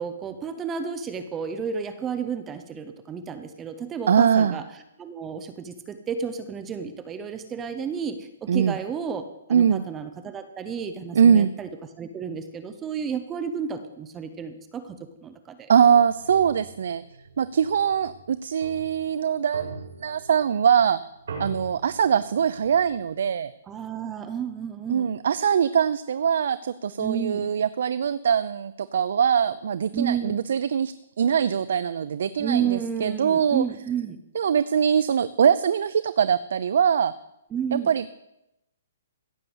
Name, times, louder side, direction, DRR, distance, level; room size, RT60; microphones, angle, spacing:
voice 1, 0.0-4.6 5.0-11.7 12.0-15.0 15.2-15.7 23.7-25.1 27.0-27.5 29.9-30.4 32.4-34.2 37.5-37.9, right 7 dB, 10° right, 9 dB, 0.7 m, -31 dB
voice 2, 4.1-4.6 8.5-8.8 9.5-9.8 11.1-11.5 15.7-17.0 17.4-21.0 21.4-23.5 24.9-33.6 34.3-37.1 37.7-38.1, right 7 dB, 60° right, 15 dB, 0.5 m, -22 dB
sound 1, 16.0-23.1, right 3 dB, 80° right, 4.7 m, -42 dB
15.5 x 6.9 x 7.9 m, 0.88 s
hypercardioid pair, 170°, 0 cm